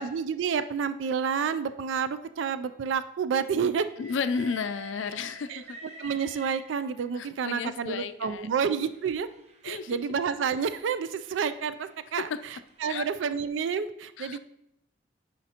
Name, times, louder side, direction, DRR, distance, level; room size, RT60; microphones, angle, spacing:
voice 1, 0.0-3.9 5.5-5.6 6.0-9.3 9.6-12.3 12.8-14.4, right 6 dB, 85° right, 12 dB, 0.4 m, -29 dB
Train, 3.8-7.2 8.1-13.3, right 3 dB, 35° right, 0.7 m, -49 dB
voice 2, 4.0-5.8 7.1-8.5 9.6-10.0 12.2-12.4 12.9-13.0 14.2-14.4, left 5 dB, 80° left, 12 dB, 0.4 m, -33 dB
9.6 x 5.1 x 2.9 m, 0.78 s
head